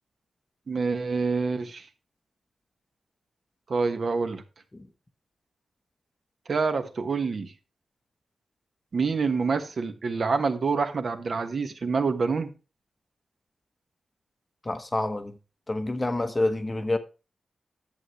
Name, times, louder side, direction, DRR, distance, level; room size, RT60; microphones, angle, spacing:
voice 1, 0.7-1.9 3.7-4.4 6.5-7.5 8.9-12.5, right 4 dB, 45° right, 1.3 m, -27 dB
voice 2, 14.7-15.3 15.7-17.0, left 2 dB, 15° left, 0.9 m, -27 dB
10.5 x 8.2 x 3.0 m
wide cardioid pair, 165°, 0 cm